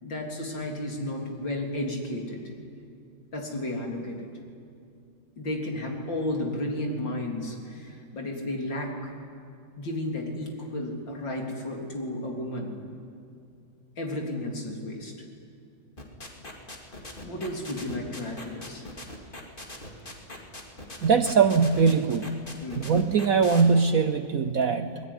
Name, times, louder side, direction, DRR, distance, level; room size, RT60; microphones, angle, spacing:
voice 1, 0.0-2.5 3.3-4.3 5.4-9.1 9.8-12.8 14.0-15.1 17.2-18.8 22.6-22.9, left 1 dB, 65° left, 1 dB, 4.2 m, -33 dB
sound 1, 16.0-23.6, left 1 dB, 25° left, 3.0 m, -41 dB
voice 2, 21.0-22.3 22.8-25.0, right 5 dB, 55° right, 9 dB, 1.0 m, -21 dB
27.0 x 20.0 x 10.0 m, 2.4 s
omnidirectional pair, 2.1 m